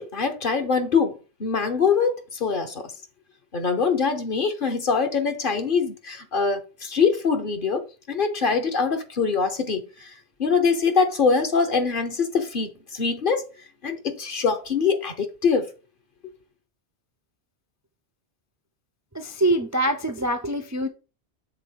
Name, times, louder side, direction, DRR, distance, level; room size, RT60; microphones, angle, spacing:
voice 1, 0.0-2.9 3.5-10.1 10.4-13.4 13.8-15.7, left 5 dB, 50° left, 1.2 m, -23 dB
voice 2, 19.2-20.9, right 1 dB, 25° right, 0.4 m, -24 dB
6.6 x 3.9 x 5.1 m
omnidirectional pair, 1.1 m